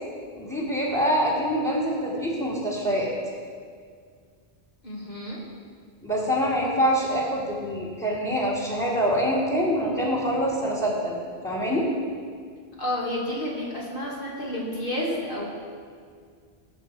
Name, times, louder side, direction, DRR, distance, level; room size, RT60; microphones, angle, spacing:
voice 1, 0.4-3.1 6.0-11.2 11.4-11.9, equal, 10° left, -5 dB, 2.2 m, -25 dB
voice 2, 4.8-5.4 12.8-15.5, left 1 dB, 55° left, -4 dB, 2.9 m, -30 dB
18.5 x 7.3 x 4.7 m, 2.1 s
omnidirectional pair, 1.1 m